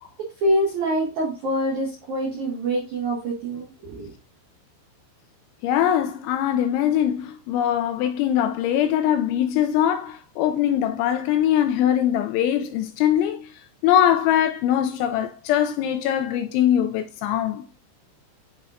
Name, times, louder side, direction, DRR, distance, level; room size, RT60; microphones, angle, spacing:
voice 1, 0.4-4.1, right 1 dB, 65° right, 1.9 m, -25 dB
voice 2, 5.6-13.5 13.8-17.7, left 10 dB, 85° left, 2.7 m, -22 dB
9.2 x 5.5 x 2.5 m
omnidirectional pair, 5.6 m